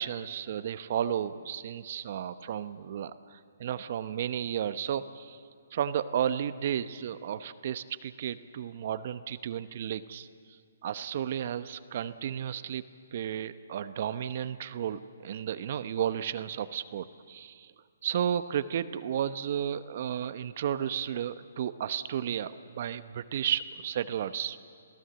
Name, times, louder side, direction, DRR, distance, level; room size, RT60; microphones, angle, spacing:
voice 1, 0.0-5.4 5.7-10.3 10.8-12.8 13.1-17.7 18.0-24.6, right 9 dB, 50° right, 13 dB, 0.8 m, -33 dB
27.0 x 17.0 x 7.7 m, 2.1 s
hypercardioid pair, 145°, 0 cm